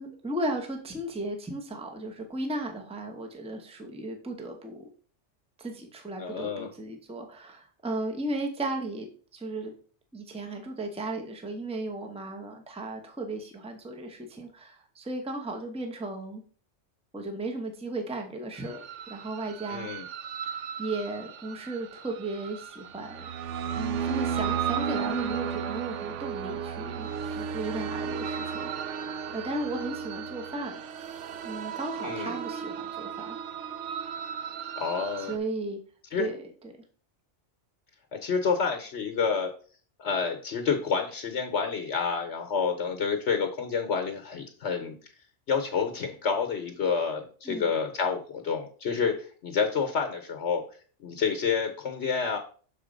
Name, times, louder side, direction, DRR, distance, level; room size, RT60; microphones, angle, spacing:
voice 1, 0.0-4.9 5.6-9.1 9.3-9.7 10.1-16.4 17.1-18.8 19.1-19.9 20.5-23.3 23.8-30.7 31.4-33.4 35.3-35.8 36.2-36.7 47.4-47.7, right 2 dB, 5° right, 3 dB, 0.9 m, -35 dB
voice 2, 6.2-6.7 19.7-20.1 32.0-32.4 34.8-35.3 36.1-36.3 38.1-39.5 40.0-45.0 45.5-49.2 49.4-50.6 51.0-52.4, left 5 dB, 70° left, 5 dB, 1.1 m, -28 dB
sound 1, 18.6-35.4, right 7 dB, 80° right, 0.9 m, -34 dB
6.8 x 4.2 x 5.1 m, 0.42 s
omnidirectional pair, 1.2 m